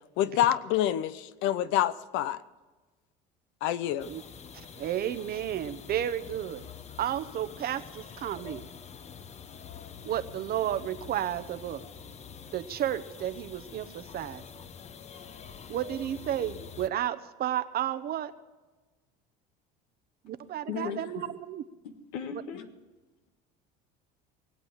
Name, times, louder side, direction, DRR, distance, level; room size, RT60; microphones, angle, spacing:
voice 1, 0.2-2.4 3.6-4.1, left 12 dB, 65° left, 15 dB, 0.8 m, -27 dB
sound 1, 4.0-16.9, left 7 dB, 30° left, 0.9 m, -46 dB
voice 2, 4.5-6.6 7.0-8.7 10.0-11.9 12.5-14.6 15.7-18.3 20.2-21.6, right 11 dB, 45° right, 12 dB, 1.0 m, -32 dB
voice 3, 20.7-21.2 21.8-22.7, left 7 dB, 85° left, 7 dB, 1.7 m, -37 dB
19.5 x 8.3 x 7.4 m, 1.2 s
supercardioid pair, 100°, 21 cm